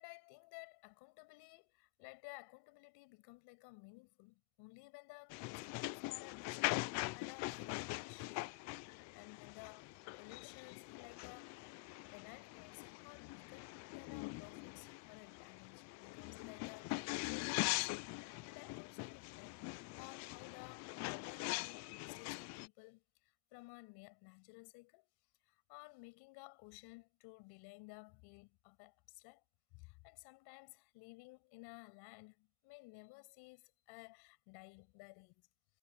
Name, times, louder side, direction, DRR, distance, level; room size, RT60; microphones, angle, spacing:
voice 1, 0.0-8.6 9.1-17.9 18.4-25.1 25.4-29.4 29.7-35.5, left 27 dB, 60° left, 6.8 m, -57 dB
sound 1, 5.3-22.7, left 23 dB, 40° left, 0.4 m, -43 dB
supercardioid pair, 140°, 46 cm